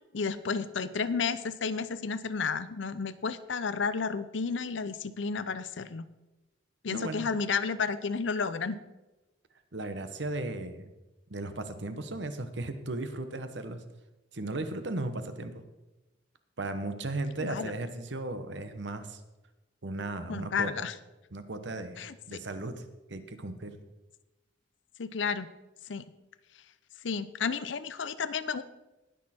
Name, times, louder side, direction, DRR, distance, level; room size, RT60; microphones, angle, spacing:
voice 1, 0.1-6.1 6.8-8.8 17.4-17.7 20.3-20.9 22.0-22.4 25.0-25.5 25.9-26.0 27.0-28.6, left 5 dB, 75° left, 14 dB, 0.6 m, -32 dB
voice 2, 6.9-7.3 9.7-10.9 11.3-13.8 14.3-15.6 16.6-19.2 19.8-20.9 21.3-22.8 23.1-23.8, right 2 dB, 70° right, 9 dB, 1.1 m, -36 dB
19.0 x 6.5 x 4.3 m, 1.1 s
head